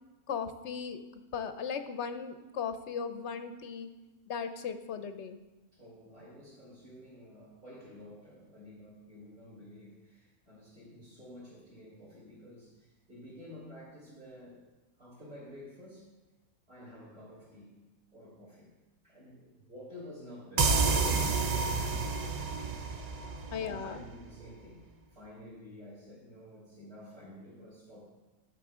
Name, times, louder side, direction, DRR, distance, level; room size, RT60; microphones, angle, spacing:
voice 1, 0.3-1.0 1.3-3.9 4.3-5.4 23.5-24.0, left 6 dB, 60° left, 9 dB, 0.8 m, -37 dB
voice 2, 5.7-14.7 15.0-16.1 16.7-17.7 18.1-18.7 19.0-22.4 23.2-28.1, left 1 dB, 45° right, -11 dB, 3.6 m, -51 dB
sound 1, 20.6-24.1, right 4 dB, 70° right, 0.4 m, -29 dB
12.0 x 7.2 x 3.6 m, 1.1 s
omnidirectional pair, 1.5 m